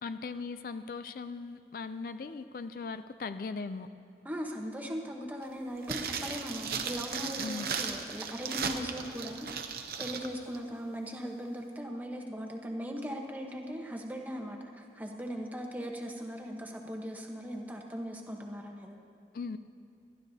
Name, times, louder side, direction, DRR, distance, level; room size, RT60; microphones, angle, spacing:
voice 1, 0.0-3.9 7.4-7.7 19.3-19.6, left 4 dB, 55° left, 11 dB, 0.4 m, -39 dB
voice 2, 4.2-9.5 10.0-19.0, equal, 10° right, 2 dB, 0.9 m, -39 dB
sound 1, 5.8-10.3 10.5-10.6, right 6 dB, 60° right, 0.8 m, -36 dB
27.0 x 11.5 x 2.8 m, 2.4 s
head